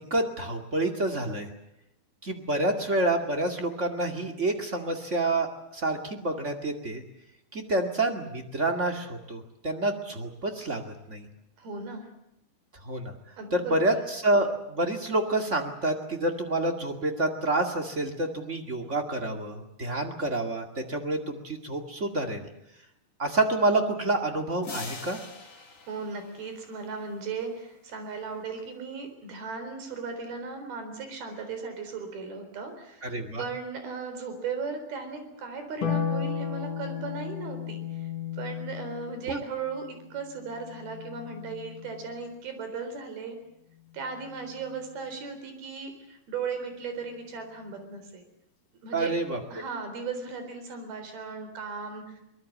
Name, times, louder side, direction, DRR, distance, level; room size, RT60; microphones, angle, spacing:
voice 1, 0.1-1.5 2.2-7.0 7.5-10.8 11.1-11.2 12.8-13.1 13.5-22.4 23.2-25.2 33.0-33.4 39.3-39.4 48.9-49.4, right 2 dB, 30° right, 4 dB, 1.5 m, -28 dB
voice 2, 11.6-12.1 13.4-13.7 25.9-33.1 33.4-38.1 38.4-43.4 43.9-48.2 48.8-49.1 49.5-52.2, right 5 dB, 70° right, 7 dB, 5.8 m, -37 dB
sound 1, 24.6-27.1, left 4 dB, 30° left, 1.8 m, -43 dB
Harp, 35.8-42.3 44.0-44.9, left 8 dB, 65° left, 5.0 m, -35 dB
23.5 x 20.5 x 8.5 m, 0.83 s
omnidirectional pair, 4.6 m